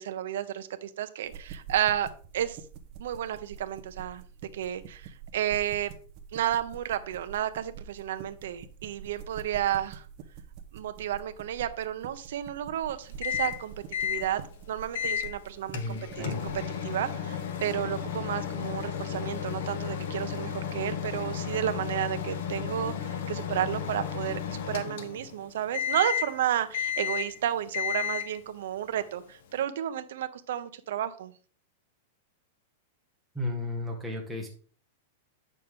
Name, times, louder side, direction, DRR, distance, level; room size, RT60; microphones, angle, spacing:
voice 1, 0.0-2.1 2.3-2.6 3.0-4.2 4.5-5.9 6.3-10.0 10.7-13.7 14.0-14.4 14.7-16.5 16.8-31.3, right 11 dB, 65° right, 10 dB, 0.9 m, -32 dB
sound 1, 1.2-16.6, right 7 dB, 30° right, 1.0 m, -46 dB
Microwave oven, 13.2-13.6 13.9-14.2 14.9-15.3 15.7-25.4 25.7-26.4 26.7-27.4 27.7-28.4, left 8 dB, 60° left, 1.0 m, -33 dB
voice 2, 15.7-16.4 33.3-34.5, left 2 dB, ahead, -3 dB, 1.7 m, -34 dB
8.7 x 6.5 x 3.7 m, 0.42 s
supercardioid pair, 175°, 0 cm